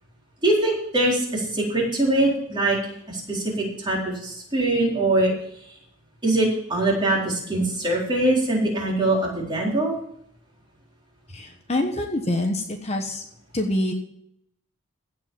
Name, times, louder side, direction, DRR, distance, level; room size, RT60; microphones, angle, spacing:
voice 1, 0.4-2.8 3.1-5.3 6.2-9.9, right 2 dB, 20° right, -4 dB, 4.3 m, -23 dB
voice 2, 11.3-13.2 13.5-13.9, left 1 dB, 30° left, 3 dB, 1.1 m, -26 dB
16.0 x 5.7 x 7.4 m, 0.72 s
head